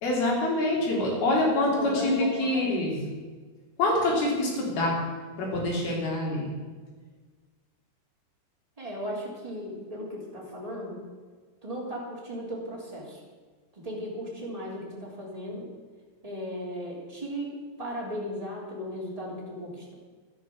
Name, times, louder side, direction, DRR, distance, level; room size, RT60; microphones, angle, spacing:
voice 1, 0.0-3.0 3.8-5.0 5.4-6.5, left 2 dB, 65° left, -3 dB, 5.2 m, -26 dB
voice 2, 0.8-3.0 8.8-11.0 11.6-13.2 13.7-15.7 16.2-17.5 17.8-19.9, equal, 10° right, -4 dB, 3.1 m, -36 dB
12.0 x 11.0 x 7.3 m, 1.5 s
omnidirectional pair, 4.7 m